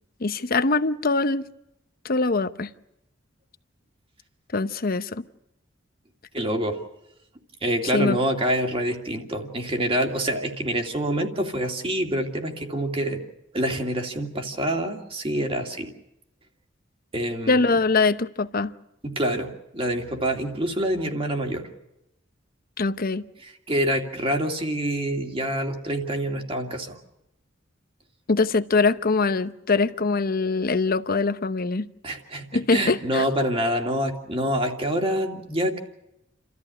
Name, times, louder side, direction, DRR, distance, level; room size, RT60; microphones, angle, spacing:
voice 1, 0.2-1.5 2.0-2.7 4.5-5.2 7.9-8.2 17.5-18.7 22.8-23.2 28.3-31.9 32.5-33.2, left 3 dB, 50° left, 0.9 m, -23 dB
voice 2, 6.3-6.8 7.6-13.2 13.5-15.9 17.1-17.8 19.0-19.5 19.7-21.7 23.4-27.0 32.0-35.8, right 1 dB, 30° right, 2.7 m, -26 dB
29.5 x 14.0 x 9.7 m
head